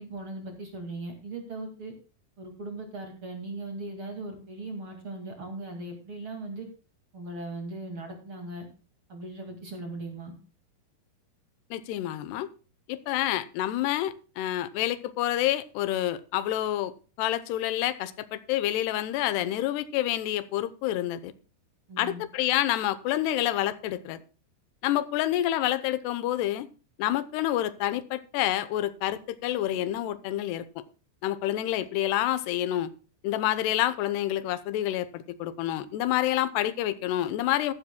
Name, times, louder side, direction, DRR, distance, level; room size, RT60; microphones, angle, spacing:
voice 1, 0.0-1.9 2.4-6.7 7.1-8.7 9.1-10.3 21.9-22.2, right 2 dB, 40° right, 3 dB, 2.4 m, -38 dB
voice 2, 11.7-12.5 12.9-16.9 17.2-21.3 22.0-24.2 24.8-26.7 27.0-30.8 31.2-32.9 33.2-37.7, left 13 dB, 85° left, 14 dB, 3.0 m, -28 dB
14.5 x 13.0 x 2.2 m, 0.36 s
omnidirectional pair, 4.6 m